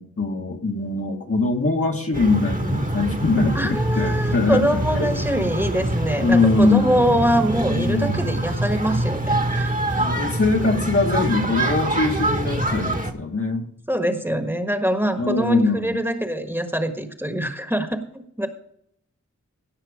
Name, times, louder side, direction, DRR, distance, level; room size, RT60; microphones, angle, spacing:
voice 1, 0.0-4.7 5.0-5.1 6.2-7.2 7.7-8.2 9.9-13.7 15.2-16.0, left 3 dB, 45° left, 2 dB, 1.7 m, -22 dB
sound 1, 2.1-13.1, right 1 dB, 25° right, 1.5 m, -25 dB
voice 2, 3.5-9.7 13.9-18.5, equal, 5° right, 6 dB, 1.5 m, -23 dB
17.0 x 6.0 x 5.1 m, 0.70 s
wide cardioid pair, 45°, 31 cm